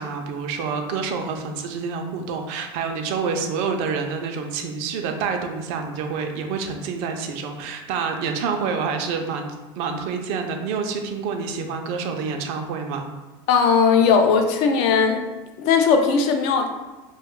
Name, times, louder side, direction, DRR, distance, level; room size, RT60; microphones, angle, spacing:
voice 1, 0.0-13.1, right 5 dB, 60° right, 5 dB, 0.4 m, -28 dB
voice 2, 13.5-15.2 15.6-16.7, left 5 dB, 60° left, 5 dB, 0.4 m, -18 dB
2.5 x 2.2 x 3.5 m, 1.1 s
supercardioid pair, 130°, 12 cm